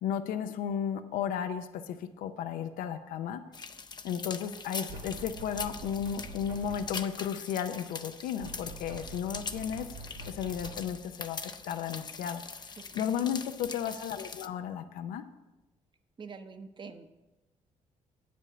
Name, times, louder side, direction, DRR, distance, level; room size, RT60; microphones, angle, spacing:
voice 1, 0.0-3.4 4.0-9.9 10.3-11.4 11.7-12.4 12.9-15.2, left 8 dB, 85° left, 10 dB, 0.5 m, -34 dB
sound 1, 3.5-14.5, left 4 dB, 30° left, 0.5 m, -42 dB
sound 2, 4.9-7.1 8.4-11.1, right 2 dB, 85° right, 1.3 m, -45 dB
voice 2, 12.8-13.3 16.2-17.1, right 5 dB, 35° right, 8 dB, 0.8 m, -46 dB
8.5 x 5.2 x 6.6 m, 1.0 s
cardioid pair, 75°, 14 cm